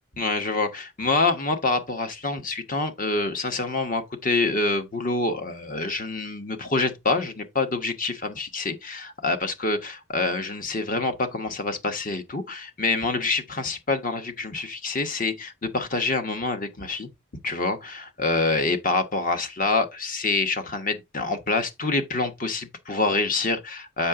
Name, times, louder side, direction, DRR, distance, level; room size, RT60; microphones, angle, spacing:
voice 1, 0.2-17.1 17.4-24.1, left 3 dB, 40° left, 1.1 m, -26 dB
7.3 x 5.7 x 3.7 m
head